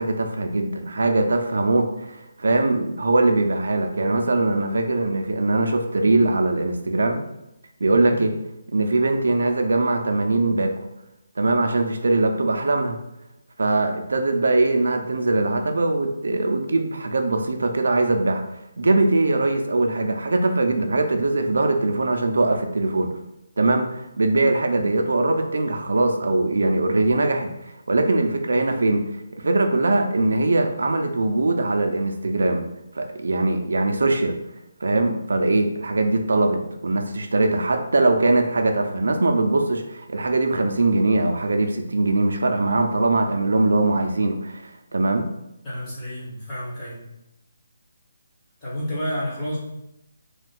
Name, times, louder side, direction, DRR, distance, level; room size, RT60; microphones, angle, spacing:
voice 1, 0.0-7.2 7.8-8.3 8.7-10.7 11.4-13.0 13.6-18.4 18.8-23.1 23.6-29.1 29.4-32.6 33.0-34.4 34.8-45.3, right 2 dB, 75° right, 4 dB, 0.4 m, -21 dB
voice 2, 7.9-8.2 45.6-47.0 48.6-49.6, equal, 10° left, -10 dB, 0.7 m, -30 dB
2.5 x 2.2 x 3.6 m, 0.88 s
hypercardioid pair, 180°, 0 cm